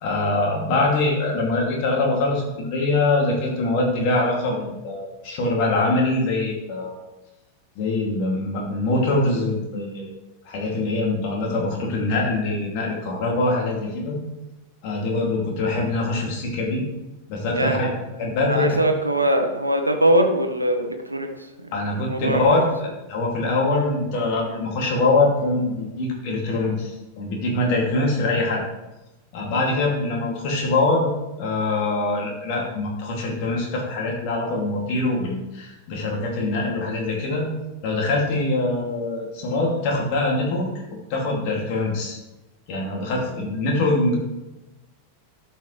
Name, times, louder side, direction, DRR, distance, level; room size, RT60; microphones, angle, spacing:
voice 1, 0.0-7.0 7.8-10.1 10.5-14.2 14.8-16.8 17.3-17.9 18.2-18.7 21.7-22.6 23.1-28.6 29.3-31.1 31.4-37.5 37.8-40.7 41.1-42.2 42.7-44.2, left 2 dB, 45° left, -1 dB, 2.5 m, -23 dB
voice 2, 17.5-18.0 18.4-21.7 22.1-22.6, right 1 dB, 85° right, 5 dB, 0.9 m, -22 dB
12.5 x 5.6 x 3.2 m, 1.0 s
figure-of-eight pair, 90°, 0 cm